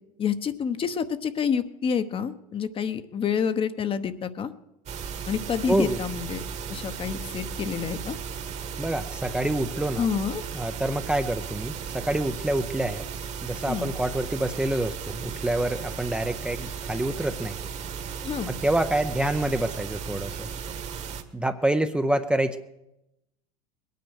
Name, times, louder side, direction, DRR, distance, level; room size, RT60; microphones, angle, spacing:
voice 1, 0.2-4.5 5.3-6.4 6.7-8.2 10.0-10.4 13.7-13.9 18.2-18.5, left 7 dB, 30° left, 11 dB, 1.0 m, -28 dB
sound 1, 4.9-21.2, right 6 dB, 40° right, 1.6 m, -35 dB
voice 2, 5.7-6.0 8.8-10.1 10.5-13.0 13.4-17.6 18.5-20.5 21.3-22.6, right 1 dB, 5° right, 7 dB, 0.7 m, -27 dB
21.0 x 9.4 x 6.5 m, 0.90 s
hypercardioid pair, 95°, 18 cm